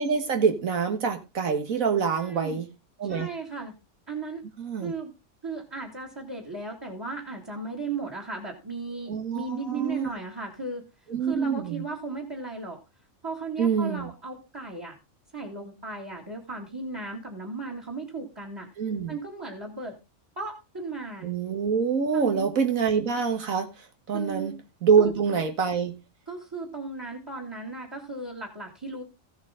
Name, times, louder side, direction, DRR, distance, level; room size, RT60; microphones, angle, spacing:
voice 1, 0.0-2.7 3.0-3.3 4.6-4.9 9.1-10.1 11.1-11.8 13.6-14.1 18.8-19.2 21.2-24.5 24.8-25.9, right 6 dB, 75° right, 5 dB, 1.8 m, -25 dB
voice 2, 2.1-2.6 3.1-3.7 4.1-4.4 4.8-5.1 5.4-10.9 11.2-12.8 13.2-15.0 15.3-18.7 19.1-20.0 20.4-21.3 22.1-22.5 24.1-24.6 25.0-25.1 26.3-29.0, right 3 dB, 15° right, 3 dB, 2.2 m, -36 dB
15.0 x 7.9 x 3.7 m, 0.27 s
omnidirectional pair, 1.5 m